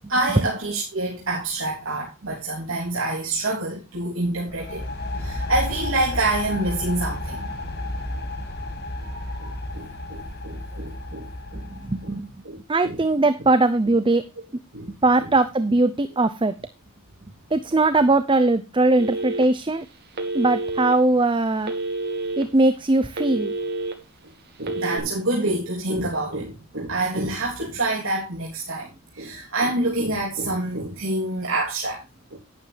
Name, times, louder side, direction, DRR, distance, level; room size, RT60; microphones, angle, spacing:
voice 1, 0.1-4.9 5.1-7.6 9.0-11.6 12.0-12.1 12.4-13.0 14.7-14.9 24.6-32.0 32.3-32.4, right 2 dB, 65° right, 3.1 m, -27 dB
sound 1, 4.5-12.2, left 1 dB, 50° left, 1.9 m, -32 dB
voice 2, 11.5-12.3 12.7-14.2 15.0-16.5 17.5-19.9 20.3-21.7 22.4-23.5, right 2 dB, 25° right, 0.6 m, -20 dB
Telephone, 19.0-19.7 20.1-20.9 21.6-22.4 22.9-23.9 24.6-25.0, right 2 dB, 50° right, 2.7 m, -28 dB
11.5 x 10.0 x 3.3 m
head